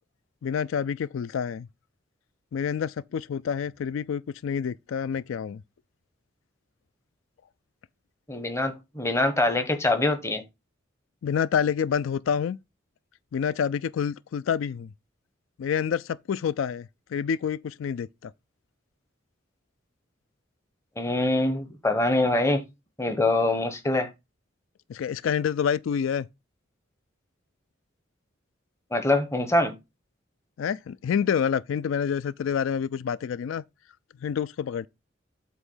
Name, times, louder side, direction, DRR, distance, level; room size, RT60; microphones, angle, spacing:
voice 1, 0.4-1.7 2.5-5.6 11.2-12.6 13.3-14.9 15.6-18.3 24.9-26.3 30.6-33.6 34.2-34.9, left 7 dB, 85° left, 0.3 m, -28 dB
voice 2, 8.3-10.4 21.0-22.6 23.0-24.1 28.9-29.7, left 2 dB, 15° left, 1.0 m, -24 dB
8.0 x 3.0 x 5.5 m
head